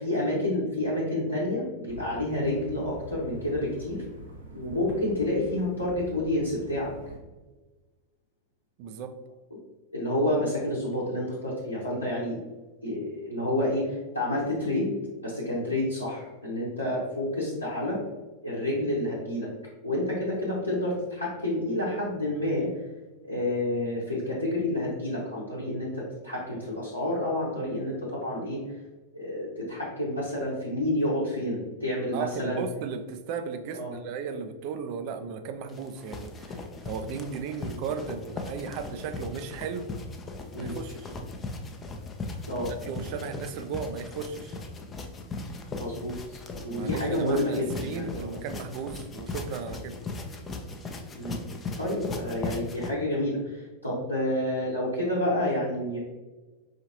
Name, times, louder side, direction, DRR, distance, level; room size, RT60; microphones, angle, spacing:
voice 1, 0.0-4.0 4.5-6.9 9.9-12.4 12.8-18.0 18.4-19.5 19.8-22.7 23.2-28.6 29.1-32.6 33.7-33.9 37.6-37.8 40.5-40.7 42.5-42.7 45.8-48.3 51.1-51.4 51.8-56.0, left 1 dB, 90° left, -9 dB, 1.0 m, -29 dB
sound 1, 1.9-7.2, right 2 dB, 70° right, 0.8 m, -45 dB
voice 2, 8.8-9.1 32.1-39.9 40.6-41.1 42.8-44.6 46.7-50.0, right 6 dB, 45° right, 8 dB, 0.4 m, -36 dB
sound 2, 35.7-52.9, left 3 dB, 20° left, 0.5 m, -38 dB
4.9 x 2.7 x 2.9 m, 1.2 s
figure-of-eight pair, 90°, 0 cm